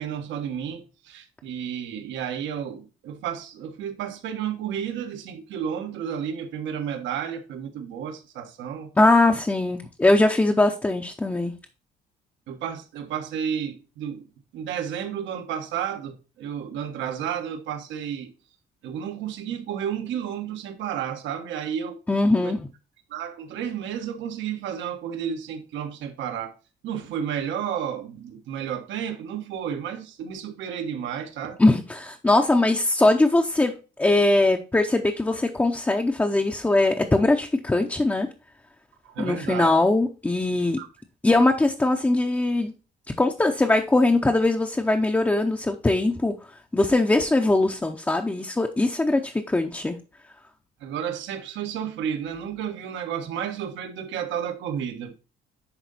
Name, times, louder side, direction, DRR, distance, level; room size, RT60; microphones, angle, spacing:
voice 1, 0.0-8.9 9.3-9.4 12.5-14.3 14.5-18.3 18.8-22.0 22.3-22.5 23.1-26.5 26.8-31.6 39.0-39.7 40.8-40.9 50.8-55.1, right 8 dB, 75° right, 1.3 m, -32 dB
voice 2, 9.0-11.5 22.1-22.7 31.6-33.7 34.0-38.3 39.2-40.8 41.2-42.7 43.2-46.3 46.7-50.0, left 2 dB, 10° left, 0.6 m, -21 dB
10.5 x 3.8 x 4.1 m
cardioid pair, 130°, 19 cm